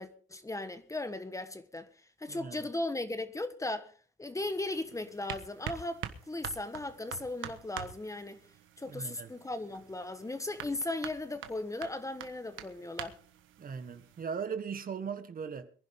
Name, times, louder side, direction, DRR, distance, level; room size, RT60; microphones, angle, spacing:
voice 1, 0.0-1.9 2.2-3.9 4.2-8.4 8.8-13.2, left 2 dB, 15° left, 1.3 m, -37 dB
voice 2, 2.3-2.7 8.8-9.3 13.6-15.7, right 6 dB, 45° right, 1.6 m, -39 dB
sound 1, 4.4-14.2, right 10 dB, 85° right, 1.4 m, -46 dB
23.0 x 11.0 x 3.7 m
cardioid pair, 90°, 20 cm